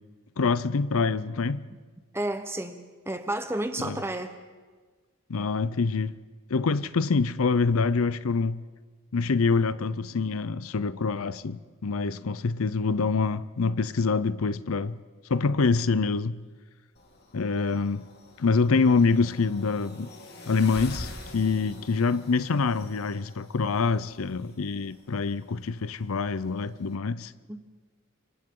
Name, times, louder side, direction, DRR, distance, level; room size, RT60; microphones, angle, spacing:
voice 1, 0.4-1.7 3.8-4.0 5.3-6.2 6.5-8.6 9.1-15.0 15.3-16.4 17.3-18.1 18.4-20.1 20.5-27.3, left 4 dB, 75° left, 0.6 m, -25 dB
voice 2, 2.1-2.8 3.1-4.3 27.5-27.6, right 1 dB, 10° right, 1.0 m, -31 dB
sound 1, 16.9-26.9, left 1 dB, 50° left, 2.7 m, -47 dB
28.5 x 25.5 x 3.8 m
head